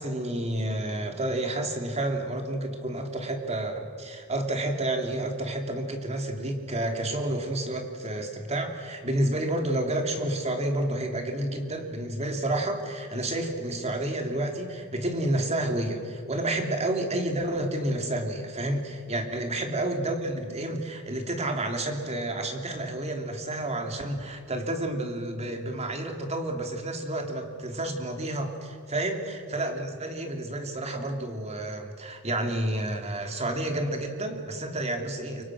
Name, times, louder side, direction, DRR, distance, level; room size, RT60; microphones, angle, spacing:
voice 1, 0.0-35.4, right 1 dB, 30° right, 4 dB, 3.0 m, -30 dB
29.0 x 24.5 x 6.3 m, 2.2 s
head